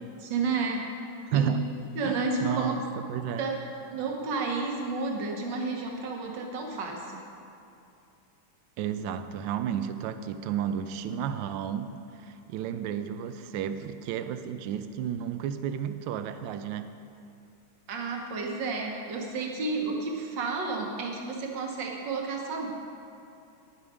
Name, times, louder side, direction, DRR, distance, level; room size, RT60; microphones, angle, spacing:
voice 1, 0.2-0.9 1.3-1.5 2.0-3.0 3.4-3.6 3.9-7.2 17.9-22.7, right 3 dB, 60° right, 1 dB, 1.8 m, -31 dB
voice 2, 1.3-1.6 2.0-2.8 3.1-3.4 8.8-16.9, right 9 dB, 75° right, 10 dB, 1.1 m, -32 dB
10.5 x 8.4 x 5.0 m, 2.6 s
omnidirectional pair, 2.4 m